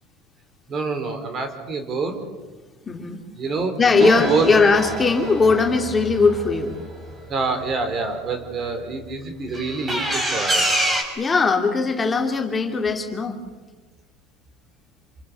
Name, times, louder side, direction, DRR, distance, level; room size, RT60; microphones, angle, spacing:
voice 1, 0.7-2.2 3.4-4.5 7.3-10.6, right 4 dB, 40° right, 7 dB, 4.6 m, -26 dB
voice 2, 2.9-3.2 3.8-6.7 11.2-13.4, left 4 dB, 20° left, 3 dB, 2.8 m, -19 dB
sound 1, 4.0-7.7 9.5-11.0, right 1 dB, 20° right, 6.5 m, -26 dB
28.0 x 24.5 x 7.1 m, 1.3 s
supercardioid pair, 105°, 0 cm